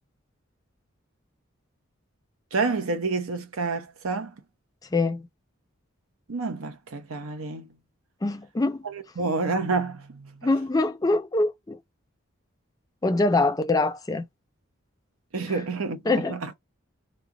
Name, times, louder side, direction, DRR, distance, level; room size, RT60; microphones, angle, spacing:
voice 1, 2.5-4.3 6.3-7.7 8.8-10.5 15.3-16.5, right 4 dB, 85° right, 0.8 m, -29 dB
voice 2, 4.9-5.3 8.2-8.8 10.4-11.8 13.0-14.3 16.1-16.4, left 2 dB, 15° left, 0.4 m, -24 dB
3.0 x 2.4 x 3.7 m
head